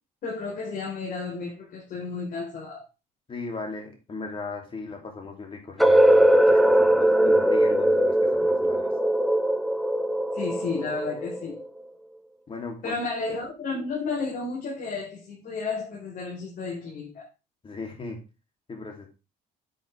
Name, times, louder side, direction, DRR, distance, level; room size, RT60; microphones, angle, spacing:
voice 1, 0.2-2.8 10.3-11.6 12.8-17.2, left 4 dB, 55° left, 4.6 m, -32 dB
voice 2, 3.3-8.9 12.5-13.0 17.6-18.2 18.7-19.1, left 3 dB, 30° left, 3.2 m, -37 dB
sound 1, 5.8-11.7, right 1 dB, ahead, 0.9 m, -20 dB
8.8 x 8.5 x 3.6 m
cardioid pair, 110°, 17 cm